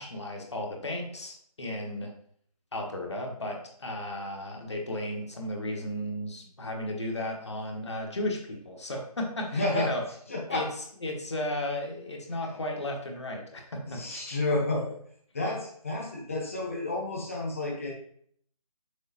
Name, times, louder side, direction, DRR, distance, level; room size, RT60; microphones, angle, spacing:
voice 1, 0.0-2.1 2.7-10.0 10.5-10.7 11.0-14.3, left 1 dB, 45° left, 1 dB, 1.1 m, -34 dB
voice 2, 9.5-9.9 10.3-10.7 12.4-12.5 13.9-15.0 15.3-17.9, left 2 dB, 20° left, -1 dB, 1.0 m, -30 dB
6.4 x 5.8 x 2.8 m, 0.62 s
figure-of-eight pair, 175°, 20 cm